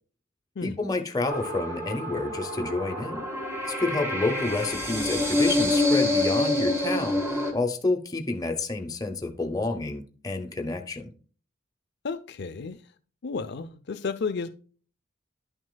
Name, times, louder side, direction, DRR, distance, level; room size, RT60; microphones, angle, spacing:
voice 1, 0.6-3.2 3.7-7.2 7.5-11.1, left 3 dB, 20° left, 4 dB, 0.7 m, -29 dB
sound 1, 1.3-7.5, left 1 dB, 15° right, 1.3 m, -27 dB
voice 2, 12.0-12.8 13.2-14.5, left 4 dB, 55° left, 8 dB, 0.5 m, -32 dB
11.0 x 6.3 x 2.2 m, 0.40 s
head